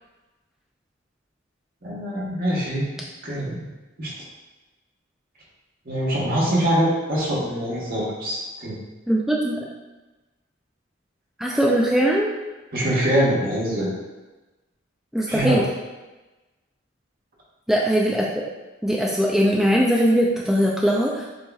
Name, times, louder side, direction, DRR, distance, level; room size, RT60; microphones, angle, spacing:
voice 1, 1.8-2.9 3.2-3.7 4.0-4.1 5.8-8.7 12.7-13.9 15.3-15.6, right 1 dB, 50° right, -6 dB, 1.4 m, -23 dB
voice 2, 9.1-9.7 11.4-12.3 15.1-15.6 17.7-18.5 18.8-21.3, equal, ahead, -4 dB, 0.3 m, -20 dB
7.5 x 2.8 x 2.3 m, 1.1 s
head